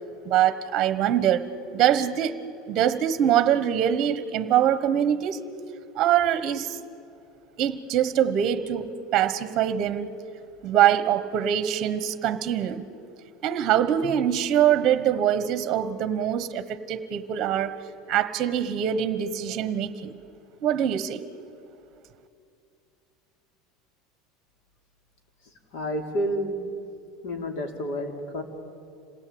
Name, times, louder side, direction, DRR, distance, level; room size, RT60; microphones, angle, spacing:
voice 1, 0.2-2.4 2.7-5.4 5.9-6.8 7.6-10.1 10.6-12.8 13.4-17.8 18.1-20.2 20.6-21.2, right 10 dB, 35° right, 13 dB, 1.1 m, -23 dB
voice 2, 25.4-26.6 27.2-28.4, equal, 60° left, 4 dB, 3.3 m, -30 dB
27.0 x 18.0 x 8.7 m, 2.5 s
supercardioid pair, 160°, 0 cm